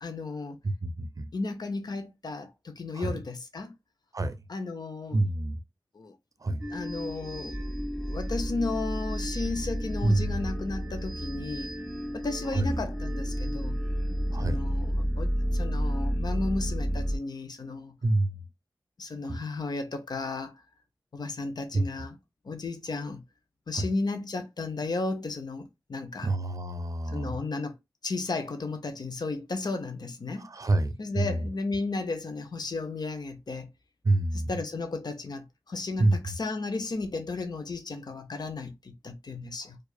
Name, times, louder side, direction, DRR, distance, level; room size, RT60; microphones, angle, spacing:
voice 1, 0.0-0.6 1.3-3.7 4.5-5.2 5.9-6.1 6.4-7.6 8.0-11.7 12.1-13.8 14.4-17.9 19.0-20.6 21.1-22.2 22.4-23.2 23.7-26.3 27.1-27.8 28.0-30.5 31.0-33.7 34.5-39.8, left 3 dB, 65° left, 0.6 m, -34 dB
voice 2, 0.6-1.3 2.9-3.2 4.1-4.3 5.1-5.6 6.4-6.7 10.0-10.5 12.5-12.8 14.3-14.7 18.0-18.4 19.2-19.4 21.7-22.1 23.7-23.9 26.2-27.4 30.4-31.5 34.0-34.6 36.0-36.4, right 2 dB, 50° right, 0.5 m, -28 dB
sound 1, 6.6-17.2, equal, 5° left, 1.8 m, -31 dB
4.6 x 2.4 x 2.3 m
wide cardioid pair, 85°, 7 cm